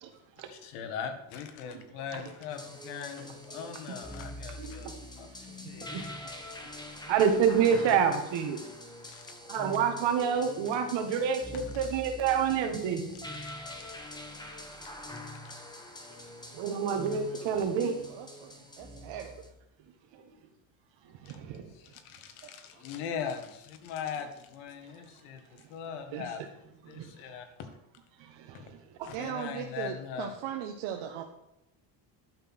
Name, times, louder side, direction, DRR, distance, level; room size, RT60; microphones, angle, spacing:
voice 1, 0.4-4.9 5.2-6.0 9.0-9.3 11.5-11.6 15.4-15.5 21.3-21.4 21.7-26.4 26.9-27.7 28.5-28.6 29.0-30.4, left 7 dB, 85° left, 7 dB, 1.8 m, -40 dB
sound 1, 2.5-19.5, left 1 dB, 10° left, 1.2 m, -44 dB
voice 2, 4.6-4.9 5.6-6.0 7.1-8.6 9.5-13.0 16.5-17.9 21.3-21.7 26.9-27.1 28.4-28.6 29.0-29.1, right 7 dB, 65° right, 6 dB, 1.9 m, -28 dB
voice 3, 17.8-19.4 22.4-22.5 26.1-26.4 29.1-31.2, right 9 dB, 80° right, 3 dB, 1.2 m, -38 dB
11.5 x 6.0 x 6.2 m, 0.84 s
cardioid pair, 155°, 48 cm